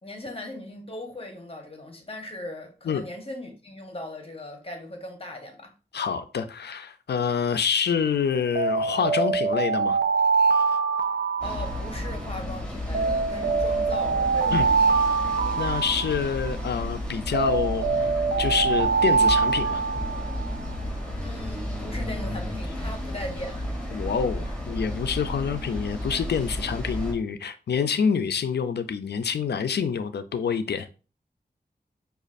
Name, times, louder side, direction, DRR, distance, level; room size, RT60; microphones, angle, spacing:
voice 1, 0.0-5.7 11.4-14.8 21.2-23.9, left 1 dB, 35° left, 1.0 m, -39 dB
voice 2, 5.9-10.0 14.5-14.6 15.6-17.9 18.4-19.9 23.9-30.9, left 6 dB, 80° left, 0.4 m, -27 dB
Alarm, 8.5-12.3 12.9-16.6 17.3-20.5, right 5 dB, 85° right, 0.4 m, -24 dB
sound 1, 11.4-27.1, left 1 dB, 5° left, 1.8 m, -33 dB
5.0 x 2.4 x 2.5 m
wide cardioid pair, 70°, 17 cm